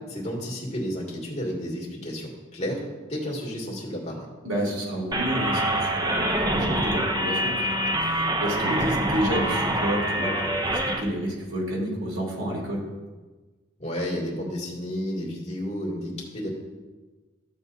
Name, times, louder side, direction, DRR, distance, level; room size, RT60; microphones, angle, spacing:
voice 1, 0.1-2.8 3.1-4.3 13.8-16.5, equal, 35° left, -4 dB, 2.4 m, -31 dB
voice 2, 4.4-12.8, equal, 85° right, -3 dB, 3.0 m, -30 dB
sound 1, 5.1-11.0, right 1 dB, 20° right, 0.6 m, -25 dB
14.0 x 7.8 x 2.8 m, 1.3 s
head